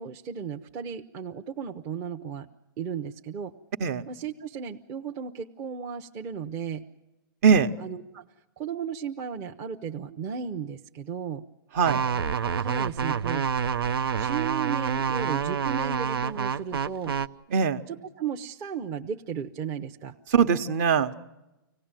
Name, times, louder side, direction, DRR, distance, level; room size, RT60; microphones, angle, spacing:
voice 1, 0.0-2.5 2.8-3.5 4.1-6.8 7.8-8.3 8.6-11.4 12.6-13.5 14.1-17.1 17.9-20.1, right 7 dB, 25° right, 2 dB, 0.8 m, -35 dB
sound 1, 11.8-17.3, right 7 dB, 90° right, 0.7 m, -27 dB
voice 2, 17.5-17.8 20.3-21.1, right 6 dB, 45° right, 10 dB, 1.2 m, -21 dB
25.5 x 17.5 x 9.0 m, 1.0 s
hypercardioid pair, 150°, 12 cm